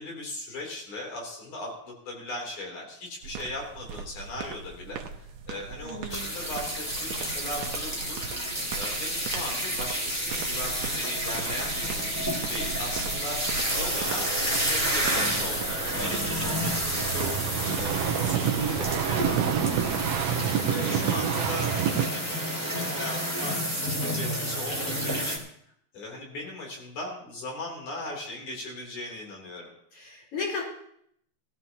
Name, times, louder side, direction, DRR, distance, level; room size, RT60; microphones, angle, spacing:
voice 1, 0.0-8.2 8.7-13.4 13.8-17.4 17.8-25.4 25.9-29.7, left 2 dB, 80° left, 0 dB, 4.7 m, -38 dB
sound 1, 3.2-20.3, right 6 dB, 85° right, 2.4 m, -39 dB
voice 2, 5.8-6.3 20.7-21.1 29.9-30.6, left 2 dB, 50° left, -3 dB, 4.9 m, -35 dB
sound 2, 6.1-25.4, equal, 5° left, 2.0 m, -30 dB
sound 3, 13.7-22.1, right 9 dB, 70° right, 1.9 m, -30 dB
18.0 x 15.0 x 2.9 m, 0.68 s
omnidirectional pair, 3.4 m